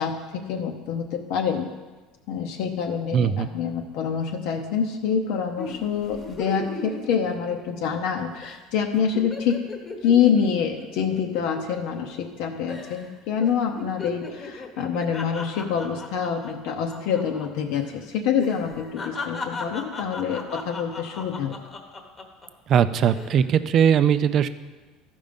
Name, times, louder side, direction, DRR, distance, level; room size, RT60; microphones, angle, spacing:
voice 1, 0.0-1.7 2.3-9.6 10.0-21.6, left 7 dB, 65° left, 2 dB, 0.8 m, -26 dB
voice 2, 3.1-3.5 22.7-24.5, right 8 dB, 40° right, 13 dB, 0.4 m, -20 dB
sound 1, 5.6-8.1 8.4-8.6 8.9-12.4 12.7-13.1 13.4-17.5 17.7-17.9 18.4-22.5 23.0-23.4, left 3 dB, 25° left, 1.1 m, -37 dB
13.5 x 5.3 x 5.2 m, 1.3 s
cardioid pair, 150°, 0 cm